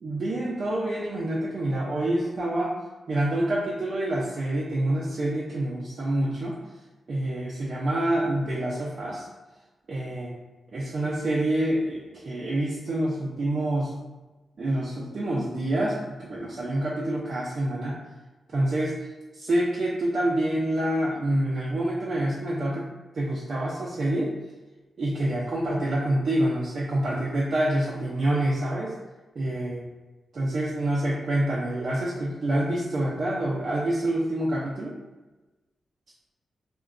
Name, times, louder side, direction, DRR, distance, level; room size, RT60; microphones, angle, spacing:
voice 1, 0.0-2.8 3.1-6.6 7.1-9.3 9.9-10.3 10.7-14.0 14.6-18.0 18.5-19.1 19.3-22.9 23.1-24.3 25.0-28.9 29.4-29.9 30.3-34.9, right 1 dB, 45° right, -5 dB, 0.4 m, -27 dB
3.8 x 2.2 x 2.4 m, 1.2 s
wide cardioid pair, 150°, 0 cm